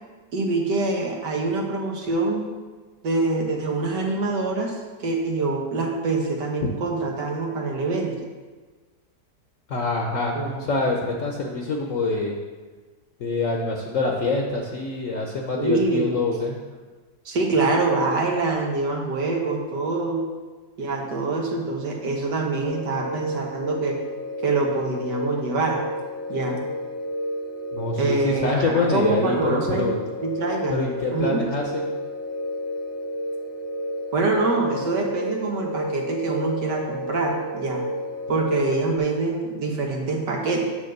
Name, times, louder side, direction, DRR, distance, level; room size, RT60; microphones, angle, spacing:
voice 1, 0.3-2.5 3.0-8.1 10.4-10.6 15.6-16.2 17.3-20.2 20.8-24.0 24.4-25.8 26.3-26.7 28.0-29.9 30.2-30.8 31.1-31.4 34.1-37.8 38.3-40.6, right 3 dB, 85° right, 0 dB, 1.8 m, -25 dB
voice 2, 9.7-12.4 13.2-16.6 27.7-30.0 30.7-31.8, left 3 dB, 60° left, 1 dB, 1.1 m, -25 dB
sound 1, 22.6-39.0, left 1 dB, 45° right, 1.5 m, -31 dB
9.3 x 3.5 x 6.6 m, 1.3 s
omnidirectional pair, 1.8 m